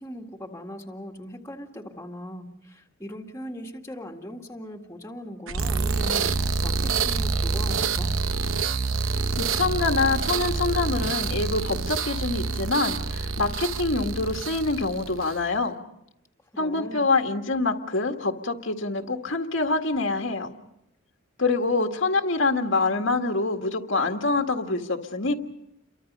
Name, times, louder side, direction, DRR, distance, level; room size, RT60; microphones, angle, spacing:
voice 1, 0.0-6.3 6.6-8.1 16.5-17.1, equal, 15° left, 1 dB, 2.0 m, -39 dB
sound 1, 5.5-15.5, right 4 dB, 70° right, 0.9 m, -27 dB
voice 2, 9.4-15.7 16.6-20.5 21.4-25.3, left 3 dB, 65° left, 4 dB, 1.9 m, -25 dB
29.5 x 24.0 x 5.5 m, 0.81 s
head